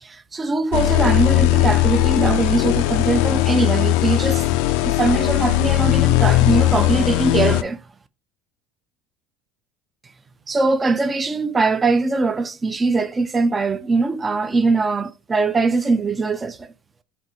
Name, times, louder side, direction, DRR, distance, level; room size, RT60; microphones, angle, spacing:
voice 1, 0.0-4.4 4.8-7.8 10.5-16.7, right 3 dB, 15° right, 0.3 m, -21 dB
sound 1, 0.7-7.6, left 15 dB, 70° left, 0.3 m, -18 dB
4.3 x 2.6 x 3.8 m
cardioid pair, 140°, 0 cm